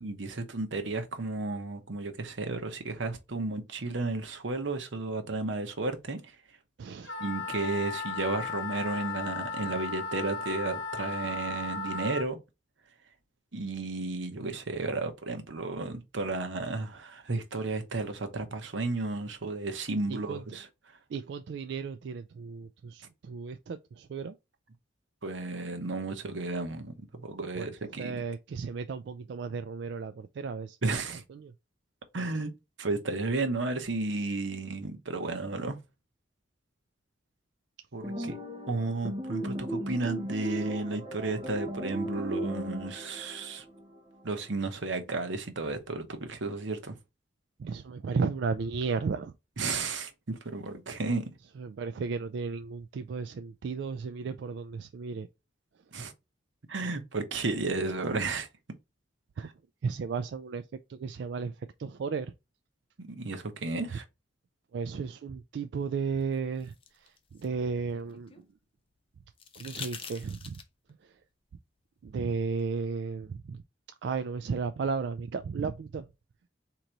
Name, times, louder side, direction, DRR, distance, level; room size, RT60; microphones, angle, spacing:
voice 1, 0.0-6.3 7.2-12.4 13.5-20.7 25.2-28.1 30.8-31.2 32.1-32.5 32.8-35.8 37.9-38.4 38.7-43.6 44.2-47.0 49.6-51.2 55.9-56.1 56.7-58.5 59.4-59.5 63.0-64.0, right 3 dB, 90° right, 1.0 m, -33 dB
voice 2, 6.8-7.1 20.1-20.4 21.1-24.4 27.6-27.7 28.0-30.8 31.3-31.5 38.2-38.4 47.6-49.3 51.6-55.3 59.4-59.5 59.8-60.6 60.9-61.5 61.8-62.3 64.7-68.3 69.6-70.6 71.0-71.1 72.0-73.6 74.0-76.1, right 5 dB, 65° right, 0.3 m, -34 dB
Wind instrument woodwind instrument, 7.0-12.3, left 4 dB, 80° left, 0.8 m, -36 dB
sound 1, 38.0-44.4, right 1 dB, 25° right, 1.3 m, -37 dB
sound 2, 66.2-68.5 69.4-70.9 72.6-72.7, left 6 dB, 30° left, 0.5 m, -45 dB
3.9 x 3.0 x 4.5 m
head